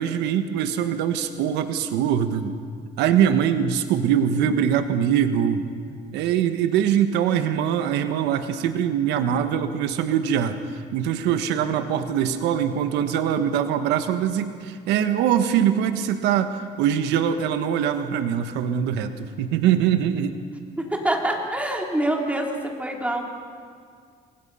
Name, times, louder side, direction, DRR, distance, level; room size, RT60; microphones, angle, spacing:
voice 1, 0.0-2.5 3.0-5.7 6.1-20.4, right 9 dB, 90° right, 8 dB, 1.3 m, -23 dB
voice 2, 20.8-23.2, right 1 dB, 10° right, 1 dB, 3.4 m, -25 dB
28.0 x 22.0 x 5.6 m, 2.1 s
cardioid pair, 110°, 17 cm